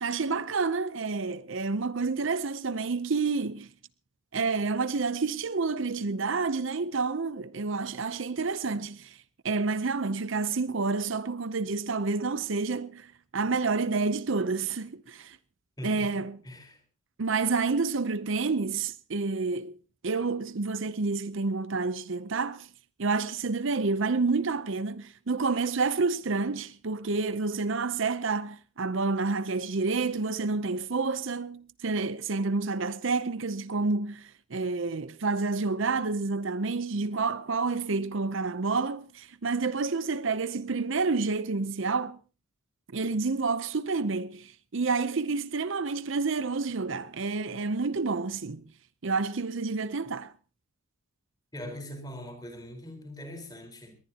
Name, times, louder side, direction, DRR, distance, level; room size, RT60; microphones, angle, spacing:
voice 1, 0.0-3.7 4.3-9.2 9.4-15.4 15.8-16.4 17.2-19.8 20.0-22.7 23.0-42.2 42.9-48.6 49.0-50.3, right 4 dB, 65° right, 0.7 m, -29 dB
voice 2, 15.8-16.8 51.5-54.0, left 1 dB, 20° left, 4.4 m, -42 dB
21.5 x 19.5 x 2.9 m
head